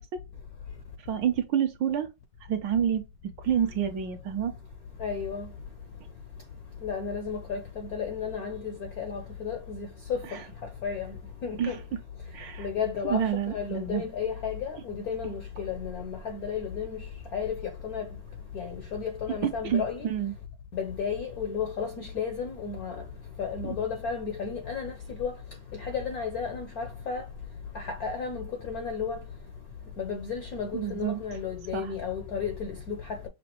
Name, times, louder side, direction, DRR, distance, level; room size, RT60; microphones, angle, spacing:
voice 1, 1.1-2.1 2.5-3.0 3.4-4.5 10.3-10.4 11.6-11.8 12.3-12.7 13.0-14.0 19.4-20.3 23.6-23.8 30.7-31.2 31.7-31.9, right 9 dB, 70° right, 1.2 m, -28 dB
voice 2, 5.0-5.5 6.8-10.2 10.8-11.1 11.4-11.8 12.6-17.0 17.3-17.5 17.8-18.1 18.5-20.1 20.7-23.0 23.4-24.9 25.2-25.3 25.7-27.2 27.7-29.2 30.0-33.2, left 6 dB, 70° left, 0.8 m, -33 dB
6.1 x 2.5 x 2.8 m
omnidirectional pair, 2.4 m